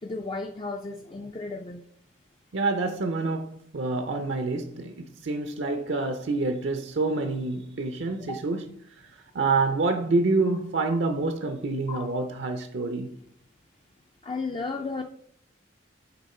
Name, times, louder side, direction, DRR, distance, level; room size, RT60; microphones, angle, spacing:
voice 1, 0.0-1.8 8.3-8.5 11.9-12.1 14.2-15.0, left 3 dB, 25° left, 0.4 m, -34 dB
voice 2, 2.5-8.7 9.3-13.2, right 3 dB, 65° right, 0.6 m, -27 dB
6.7 x 4.4 x 4.3 m
head